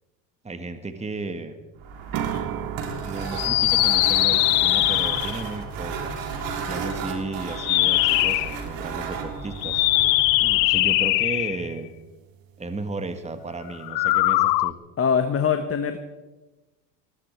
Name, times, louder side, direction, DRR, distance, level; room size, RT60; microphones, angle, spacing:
voice 1, 0.4-1.6 3.0-6.1 6.7-9.9 10.6-11.9 12.6-14.8, right 3 dB, 15° right, 8 dB, 1.7 m, -34 dB
sound 1, 1.8-11.2, right 5 dB, 60° right, 3.3 m, -33 dB
sound 2, 2.1-13.9, right 12 dB, 45° right, 1.2 m, -40 dB
sound 3, 3.3-5.5 7.5-8.6 9.6-11.7 13.8-14.7, left 20 dB, 80° left, 0.6 m, -21 dB
voice 2, 15.0-16.0, left 7 dB, 25° left, 7 dB, 1.3 m, -23 dB
20.0 x 15.5 x 4.6 m, 1.1 s
hypercardioid pair, 75°, 50 cm